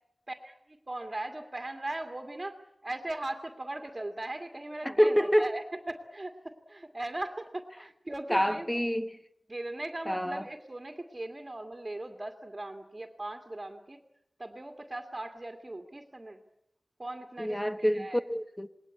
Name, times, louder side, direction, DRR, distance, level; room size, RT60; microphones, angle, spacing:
voice 1, 0.3-2.6 2.8-8.7 9.5-14.0 14.4-16.4 17.0-18.2, right 2 dB, 30° right, 2.2 m, -39 dB
voice 2, 4.8-5.5 8.3-9.2 10.1-10.4 17.4-18.7, equal, 10° left, 1.1 m, -27 dB
27.5 x 20.5 x 8.5 m
wide cardioid pair, 75°, 0 cm